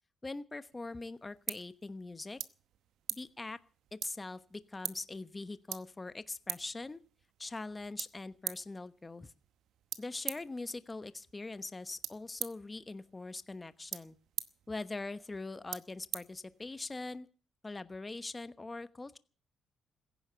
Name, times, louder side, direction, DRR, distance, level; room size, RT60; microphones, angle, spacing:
voice 1, 0.2-2.4 3.1-3.6 3.9-7.0 7.4-9.3 10.0-14.2 14.7-17.3 17.6-19.2, left 3 dB, 20° left, 13 dB, 1.1 m, -42 dB
sound 1, 0.7-17.0, right 11 dB, 80° right, 0.9 m, -46 dB
16.0 x 10.5 x 8.0 m, 0.41 s
cardioid pair, 90°, 0 cm